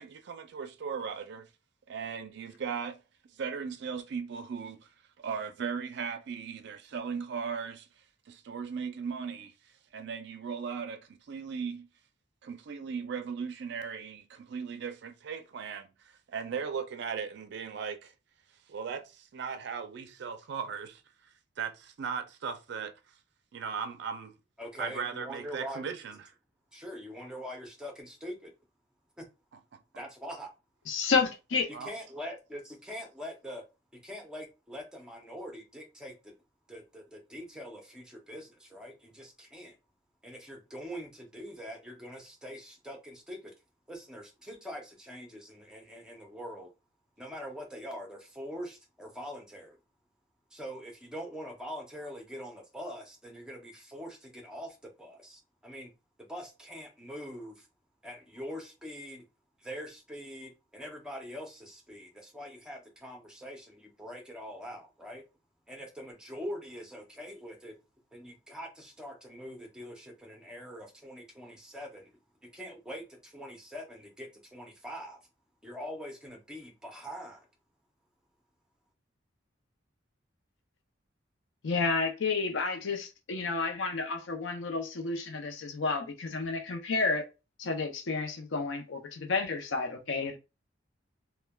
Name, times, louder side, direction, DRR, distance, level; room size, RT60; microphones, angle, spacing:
voice 1, 0.0-1.5 1.9-3.0 3.3-4.9 5.2-7.9 8.3-9.5 9.9-11.9 12.4-18.1 18.7-21.0 21.6-22.9 23.5-24.3 24.8-26.2 31.7-31.9, right 6 dB, 60° right, 0.4 m, -37 dB
voice 2, 24.6-25.8 26.7-28.5 29.2-29.3 29.9-30.5 31.7-33.6 34.0-36.3 36.7-39.7 40.2-43.5 43.9-46.7 47.2-49.8 50.5-55.9 56.2-57.7 58.0-59.2 59.6-65.2 65.7-67.8 68.1-72.2 72.5-75.2 75.6-77.5, equal, 5° right, 0.6 m, -43 dB
voice 3, 30.9-31.7 81.6-87.2 87.6-90.4, left 4 dB, 75° left, 0.6 m, -31 dB
3.2 x 2.2 x 2.2 m
head